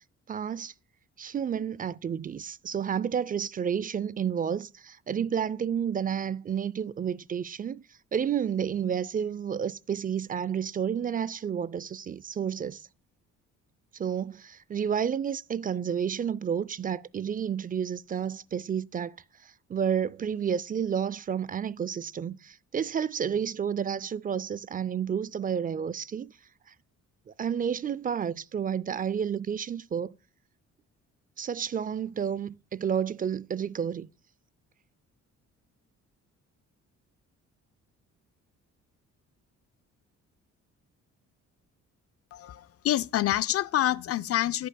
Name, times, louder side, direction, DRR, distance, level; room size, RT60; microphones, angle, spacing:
voice 1, 0.3-0.7 1.2-7.8 8.1-12.9 13.9-19.2 19.4-26.3 27.3-30.2 31.4-34.1, right 8 dB, 30° right, 0.4 m, -30 dB
voice 2, 42.3-44.7, left 13 dB, 50° left, 0.5 m, -27 dB
11.0 x 8.5 x 2.2 m
cardioid pair, 90°, 30 cm